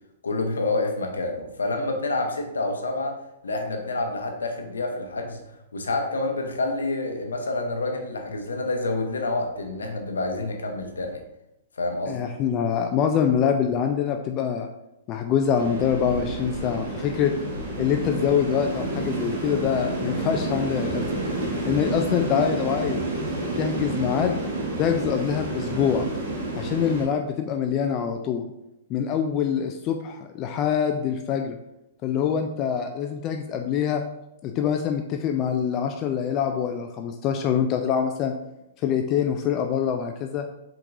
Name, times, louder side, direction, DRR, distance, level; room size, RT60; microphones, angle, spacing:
voice 1, 0.2-3.1 3.4-5.4 5.7-11.2 11.8-12.3, left 2 dB, 85° left, 3 dB, 0.7 m, -28 dB
voice 2, 12.1-14.7 15.1-17.3 17.8-21.0 21.6-23.0 23.6-24.4 24.8-26.1 26.6-28.5 28.9-31.6 32.0-34.0 34.4-38.4 38.8-40.5, left 8 dB, 35° left, 5 dB, 0.3 m, -25 dB
sound 1, 15.5-27.0, right 2 dB, 65° right, 1.5 m, -29 dB
4.6 x 3.7 x 2.6 m, 0.88 s
hypercardioid pair, 120°, 0 cm